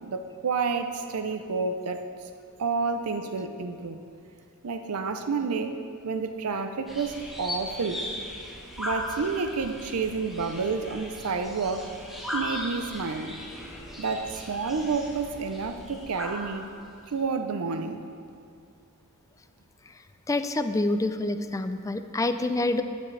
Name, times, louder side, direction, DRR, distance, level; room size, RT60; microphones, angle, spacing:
voice 1, 0.0-2.1 2.6-4.0 4.6-5.8 6.0-8.1 8.8-11.9 12.3-13.3 14.0-16.7 17.1-18.0, right 4 dB, 80° right, 7 dB, 0.6 m, -29 dB
sound 1, 6.9-17.2, left 1 dB, ahead, 1.3 m, -38 dB
voice 2, 20.3-22.8, left 2 dB, 15° left, 9 dB, 0.4 m, -27 dB
13.0 x 9.2 x 3.3 m, 2.4 s
head